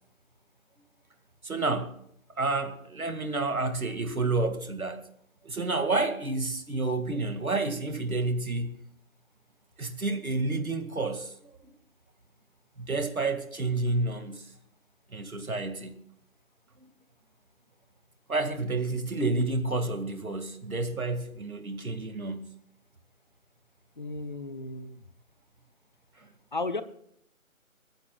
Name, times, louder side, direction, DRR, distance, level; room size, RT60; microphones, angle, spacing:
voice 1, 1.4-2.0 2.4-5.0 5.4-8.8 9.8-11.7 12.8-14.5 15.1-15.9 16.8-16.9 18.3-22.5, right 3 dB, 80° right, 2.2 m, -30 dB
voice 2, 24.0-25.0 26.5-26.8, left 2 dB, 35° left, 0.9 m, -34 dB
27.0 x 14.5 x 2.4 m
figure-of-eight pair, 160°, 42 cm